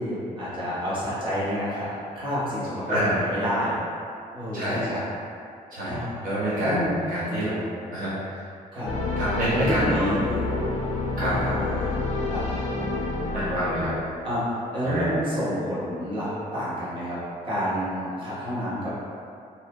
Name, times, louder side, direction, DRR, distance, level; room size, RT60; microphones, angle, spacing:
voice 1, 0.0-1.9 2.1-3.7 4.3-5.0 5.9-6.3 6.6-6.9 8.7-8.9 9.5-10.4 11.2-12.0 12.2-12.4 14.2-19.1, equal, 35° right, -11 dB, 1.1 m, -29 dB
voice 2, 4.5-5.0 5.7-7.6 7.9-8.1 9.2-10.1 10.5-10.6 11.2-11.5 13.3-13.9 14.8-15.0, equal, 70° right, -10 dB, 0.9 m, -27 dB
sound 1, 8.9-14.4, left 3 dB, 45° left, 0.4 m, -29 dB
2.8 x 2.5 x 3.6 m, 2.5 s
cardioid pair, 175°, 15 cm